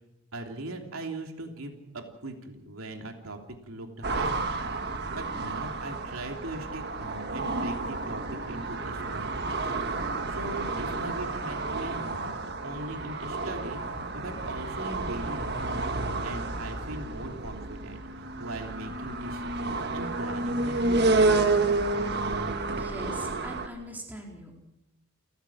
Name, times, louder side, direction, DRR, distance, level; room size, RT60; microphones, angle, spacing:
voice 1, 0.3-4.6 5.0-12.3 12.6-13.8 14.1-15.6 16.2-21.2, right 2 dB, 75° right, 3 dB, 3.1 m, -40 dB
sound 1, 4.0-23.7, right 3 dB, 50° right, 1.6 m, -30 dB
voice 2, 22.7-24.6, equal, 10° right, 0 dB, 4.3 m, -41 dB
29.5 x 14.5 x 7.3 m, 0.90 s
head